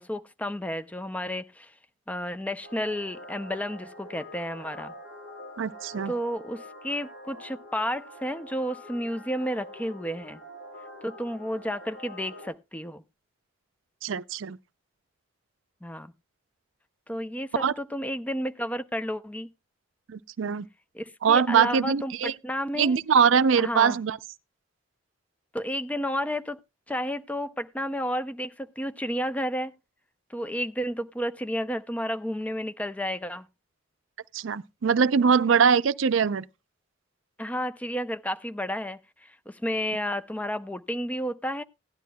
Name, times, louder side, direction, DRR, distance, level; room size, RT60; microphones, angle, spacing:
voice 1, 0.0-1.7 2.1-4.9 6.1-10.4 11.0-13.0 15.8-16.1 17.1-19.5 20.9-23.0 23.6-24.0 25.5-26.6 26.9-29.7 30.3-33.5 37.4-41.6, equal, 5° left, 0.5 m, -31 dB
sound 1, 2.6-12.5, equal, 55° left, 5.5 m, -45 dB
voice 2, 5.6-6.1 14.0-14.6 17.6-17.7 20.1-20.7 21.2-22.3 22.8-24.2 34.3-36.4, right 6 dB, 80° right, 0.5 m, -22 dB
16.5 x 11.0 x 2.2 m
head